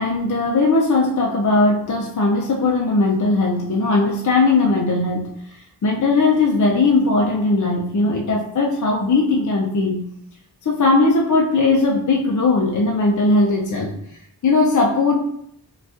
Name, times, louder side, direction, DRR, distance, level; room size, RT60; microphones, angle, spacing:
voice 1, 0.0-5.3 5.8-10.0 10.7-13.9 14.4-15.2, left 3 dB, 50° left, -1 dB, 0.5 m, -18 dB
3.9 x 2.4 x 2.4 m, 0.72 s
wide cardioid pair, 65°, 40 cm